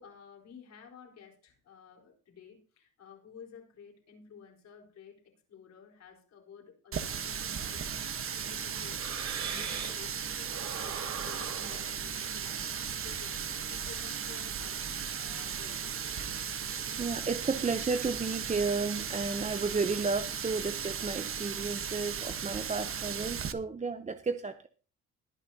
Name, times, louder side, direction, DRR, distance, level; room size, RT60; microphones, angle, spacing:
voice 1, 0.0-5.2 5.5-16.0, left 7 dB, 60° left, 1 dB, 4.3 m, -53 dB
Water tap faucet, 6.9-23.5, right 7 dB, 45° right, 1.2 m, -36 dB
sound 1, 7.5-10.1 10.4-13.5, right 6 dB, 65° right, 4.0 m, -42 dB
voice 2, 17.0-24.7, right 4 dB, 25° right, 9 dB, 0.8 m, -32 dB
20.5 x 9.3 x 2.8 m, 0.38 s
cardioid pair, 90°, 30 cm